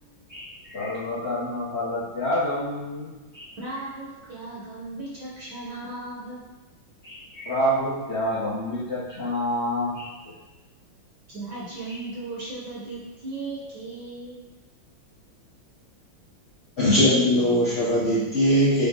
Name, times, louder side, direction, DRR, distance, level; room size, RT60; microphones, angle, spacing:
voice 1, 0.3-3.5 7.0-10.1 11.9-12.0, equal, 45° left, -10 dB, 0.9 m, -28 dB
voice 2, 3.6-6.4 11.3-14.4, right 2 dB, 60° right, -7 dB, 1.4 m, -36 dB
voice 3, 16.8-18.9, equal, 70° left, -9 dB, 0.6 m, -20 dB
5.2 x 2.3 x 3.6 m, 1.1 s
omnidirectional pair, 2.3 m